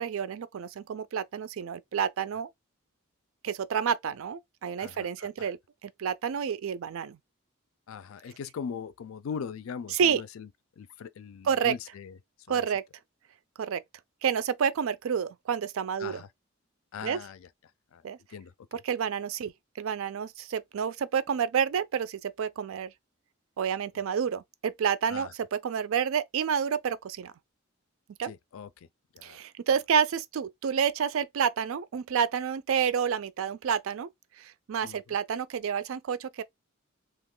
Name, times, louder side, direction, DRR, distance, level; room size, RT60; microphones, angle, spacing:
voice 1, 0.0-2.5 3.4-7.2 9.9-10.2 11.4-11.7 12.5-12.8 13.6-13.8 14.2-16.2 17.0-17.2 18.0-18.2 18.7-19.5 19.8-22.9 23.6-27.3 28.2-28.3 29.2-34.1 34.4-36.4, right 7 dB, 80° right, 0.4 m, -29 dB
voice 2, 4.8-5.5 7.9-10.5 10.8-12.2 12.5-12.7 16.0-16.3 16.9-17.5 17.9-18.0 18.3-18.8 25.1-25.3 28.2-28.9 29.1-29.4 34.8-35.2, left 6 dB, 80° left, 0.4 m, -40 dB
2.9 x 2.3 x 3.7 m
head